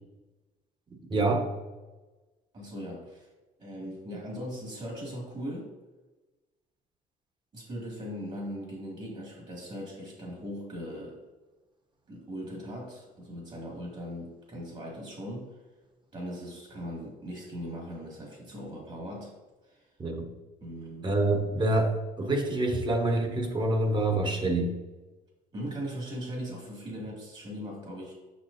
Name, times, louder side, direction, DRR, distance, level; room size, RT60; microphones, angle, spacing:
voice 1, 1.1-1.5 20.0-20.3 21.0-24.7, right 2 dB, 25° right, 3 dB, 1.1 m, -26 dB
voice 2, 2.5-3.3 3.6-5.7 7.5-11.2 12.1-15.6 16.1-19.4 19.6-19.9 20.6-21.1 25.5-28.1, equal, 40° right, -2 dB, 2.0 m, -39 dB
6.2 x 6.0 x 2.6 m, 1.2 s
cardioid pair, 110°, 17 cm